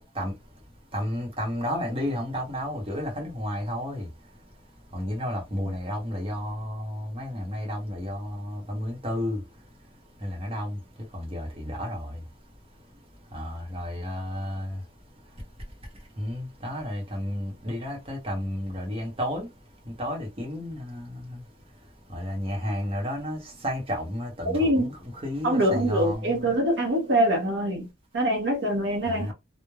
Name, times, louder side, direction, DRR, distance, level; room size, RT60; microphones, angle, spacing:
voice 1, 0.9-4.1 4.9-9.4 10.2-10.8 11.1-12.2 13.3-14.7 16.2-19.5 20.0-21.4 22.1-26.5 29.0-29.3, equal, 30° right, 0.8 m, -32 dB
voice 2, 24.5-24.9 25.4-27.9 28.1-29.3, right 1 dB, 60° right, 0.7 m, -24 dB
3.1 x 2.0 x 2.2 m
head